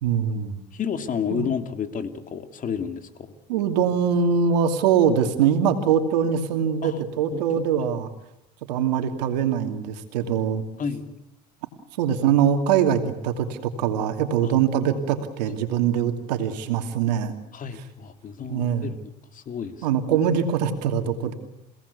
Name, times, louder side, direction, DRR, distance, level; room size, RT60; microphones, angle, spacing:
voice 1, 0.0-0.6 1.3-1.5 3.5-8.1 8.7-10.6 12.0-17.3 18.5-18.9 19.8-21.3, right 8 dB, 85° right, 6 dB, 2.7 m, -23 dB
voice 2, 0.7-3.3 6.8-7.0 7.3-7.9 10.8-11.1 14.4-14.5 17.5-18.9 19.3-19.9, left 7 dB, 40° left, 8 dB, 2.8 m, -31 dB
28.5 x 18.0 x 8.4 m, 0.86 s
supercardioid pair, 85°, 21 cm